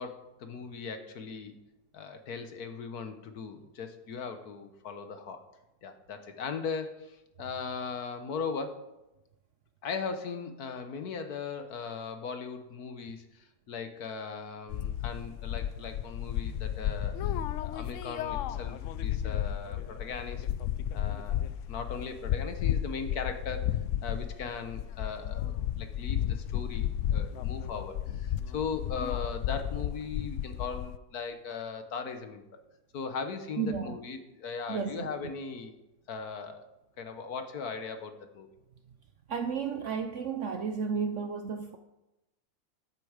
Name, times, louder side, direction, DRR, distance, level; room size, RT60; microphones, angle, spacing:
voice 1, 0.0-1.5 1.9-5.4 5.8-8.8 9.8-18.8 19.0-20.5 20.9-21.4 21.7-23.7 24.0-32.6 32.9-35.7 36.1-36.7 37.0-38.5, left 5 dB, 65° left, 1.5 m, -38 dB
sound 1, 14.7-31.0, left 11 dB, 80° left, 0.6 m, -33 dB
voice 2, 33.6-33.9 34.7-35.3 39.3-41.8, right 6 dB, 60° right, 0.8 m, -33 dB
13.5 x 8.3 x 4.9 m
omnidirectional pair, 1.8 m